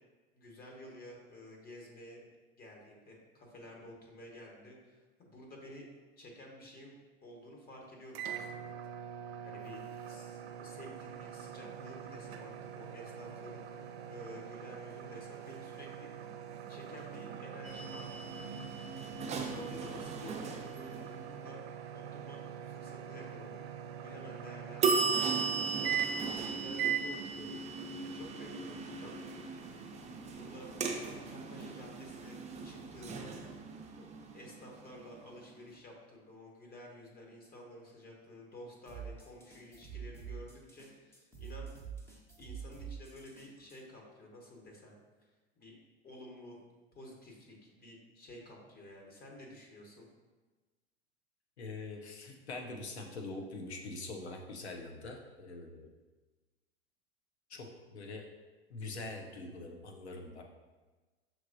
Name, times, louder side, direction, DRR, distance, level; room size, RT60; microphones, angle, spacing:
voice 1, 0.3-2.2 2.6-5.9 6.2-8.7 9.4-9.8 10.1-13.6 14.1-16.1 16.7-19.0 19.4-21.6 21.9-23.6 24.0-27.6 28.1-29.1 30.2-30.7 31.1-33.3 33.9-41.7 42.4-44.9 45.6-45.8 46.0-46.6 46.9-50.1, left 1 dB, 30° left, -1 dB, 1.2 m, -51 dB
sound 1, 8.1-26.4 26.8-27.1, right 9 dB, 70° right, 0.5 m, -42 dB
sound 2, 17.6-21.4 24.8-35.5, right 5 dB, 20° right, 0.5 m, -37 dB
sound 3, 38.9-43.8, right 7 dB, 10° left, 0.8 m, -46 dB
voice 2, 51.6-55.9 57.5-57.7 57.9-58.2 58.7-60.4, left 2 dB, 90° left, 3 dB, 0.7 m, -43 dB
5.7 x 3.1 x 2.6 m, 1.2 s
hypercardioid pair, 85°, 32 cm